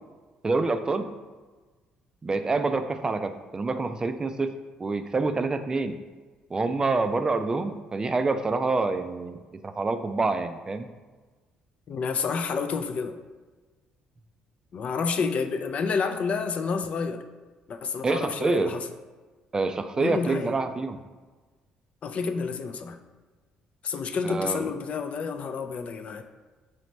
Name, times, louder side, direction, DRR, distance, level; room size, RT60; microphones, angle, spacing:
voice 1, 0.4-1.1 2.2-4.5 4.8-6.0 6.5-10.9 18.0-18.7 19.5-21.0 24.2-24.7, right 3 dB, 25° right, 8 dB, 0.3 m, -27 dB
voice 2, 11.9-13.2 14.7-17.2 17.7-18.9 20.0-20.5 22.0-23.0 23.8-26.2, left 5 dB, 50° left, 7 dB, 0.3 m, -29 dB
3.2 x 3.2 x 4.0 m, 1.3 s
supercardioid pair, 80°, 3 cm